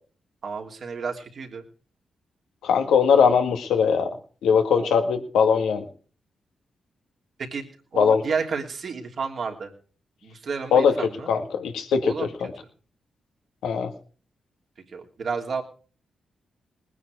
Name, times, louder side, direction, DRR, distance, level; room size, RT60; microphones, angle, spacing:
voice 1, 0.4-1.6 4.8-4.9 7.4-7.6 7.9-9.7 10.2-11.3 12.0-12.3 14.9-15.6, right 5 dB, 60° right, 2 dB, 3.1 m, -31 dB
voice 2, 2.6-4.1 4.4-5.9 8.0-8.2 10.7-10.9 11.3-12.1 13.6-13.9, left 6 dB, 80° left, 6 dB, 1.9 m, -20 dB
20.0 x 9.6 x 4.9 m, 0.41 s
supercardioid pair, 45°, 0 cm